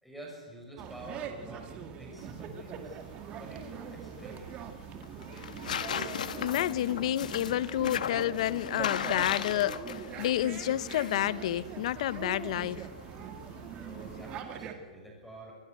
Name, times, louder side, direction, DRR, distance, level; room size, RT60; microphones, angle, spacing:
voice 1, 0.0-1.7 2.0-3.0 3.3-4.5 13.8-15.5, right 1 dB, ahead, 6.5 m, -48 dB
sound 1, 0.8-14.7, right 8 dB, 25° right, 2.0 m, -42 dB
sound 2, 2.2-14.4, left 8 dB, 80° left, 1.4 m, -39 dB
voice 2, 5.9-12.9, left 13 dB, 55° left, 0.7 m, -30 dB
25.0 x 15.5 x 8.0 m
hypercardioid pair, 150°, 4 cm